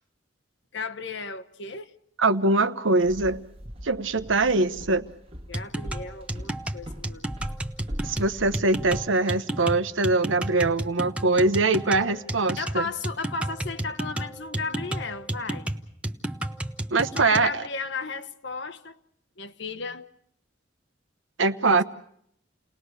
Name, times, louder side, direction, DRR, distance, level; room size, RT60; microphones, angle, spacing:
voice 1, 0.7-1.9 5.5-7.3 12.6-15.7 17.1-19.0 19.4-20.1, left 4 dB, 65° left, 1.1 m, -35 dB
voice 2, 2.2-3.4 3.8-5.0 8.0-12.8 16.9-17.6 21.4-21.8, right 3 dB, 85° right, 1.1 m, -23 dB
Walk footsteps, 3.0-9.1, equal, 30° right, 1.5 m, -40 dB
sound 1, 5.5-17.5, right 1 dB, 5° right, 0.9 m, -32 dB
29.5 x 19.5 x 6.6 m
head